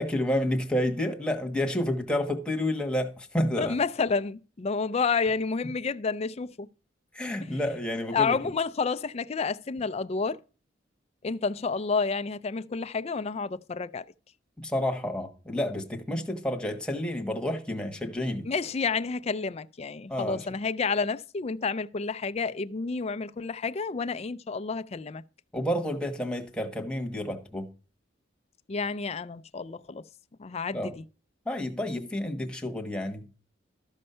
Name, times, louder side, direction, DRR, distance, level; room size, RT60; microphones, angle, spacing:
voice 1, 0.0-3.8 7.1-8.5 14.6-18.5 20.1-20.5 25.5-27.7 30.7-30.9 31.4-33.3, left 1 dB, 5° left, 1.3 m, -30 dB
voice 2, 3.6-6.7 8.1-10.4 11.2-14.0 18.5-25.2 28.7-30.0 30.4-30.9, left 4 dB, 35° left, 0.4 m, -30 dB
13.0 x 5.4 x 5.5 m
head